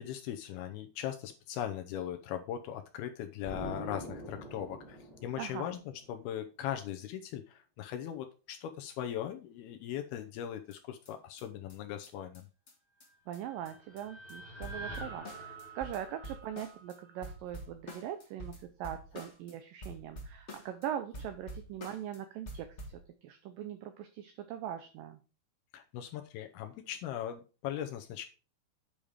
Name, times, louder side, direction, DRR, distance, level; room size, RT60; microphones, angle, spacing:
voice 1, 0.0-5.8 6.1-12.5 25.7-28.3, left 10 dB, 80° left, 6 dB, 2.5 m, -39 dB
Explosion, 3.5-6.1, right 1 dB, 15° left, 1.8 m, -44 dB
voice 2, 5.4-5.7 13.3-25.2, right 10 dB, 80° right, 8 dB, 2.0 m, -41 dB
sound 1, 10.7-10.8 11.1-11.2 11.4-11.5 11.7-11.8 12.0-12.1 12.3-12.4 12.7-12.8 13.0-13.1 13.3-13.4 13.6-14.0 14.3-14.4 14.6-17.0 17.2-19.5 19.8-20.9 21.1-22.2 22.5-23.0, equal, 40° left, 1.0 m, -47 dB
sound 2, 13.1-17.4, right 2 dB, 15° right, 1.7 m, -47 dB
8.7 x 5.4 x 4.9 m, 0.35 s
omnidirectional pair, 4.7 m